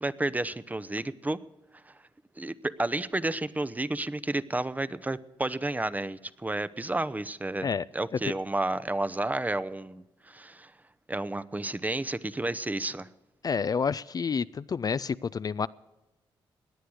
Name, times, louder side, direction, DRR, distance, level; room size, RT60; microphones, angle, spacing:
voice 1, 0.0-1.4 1.7-2.0 2.4-10.7 11.1-13.1, right 2 dB, 15° right, 16 dB, 0.7 m, -31 dB
voice 2, 13.4-15.7, left 6 dB, 40° left, 16 dB, 0.4 m, -29 dB
18.0 x 10.0 x 6.3 m, 1.0 s
cardioid pair, 65°, 10 cm